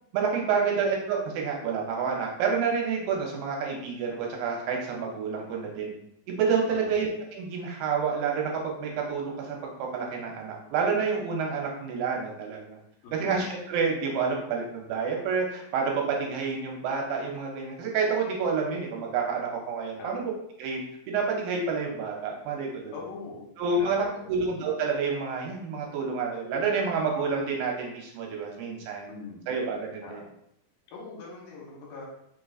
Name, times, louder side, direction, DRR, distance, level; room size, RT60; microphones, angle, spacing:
voice 1, 0.1-5.9 6.3-12.8 13.1-20.3 20.6-22.9 23.6-29.1 29.5-30.2, right 5 dB, 75° right, 0 dB, 2.4 m, -29 dB
voice 2, 6.7-7.0 13.0-13.4 20.0-20.3 22.9-24.4 29.1-29.5 30.0-30.3 30.9-32.1, left 4 dB, 75° left, -2 dB, 2.6 m, -43 dB
5.5 x 3.8 x 2.3 m, 0.73 s
omnidirectional pair, 4.3 m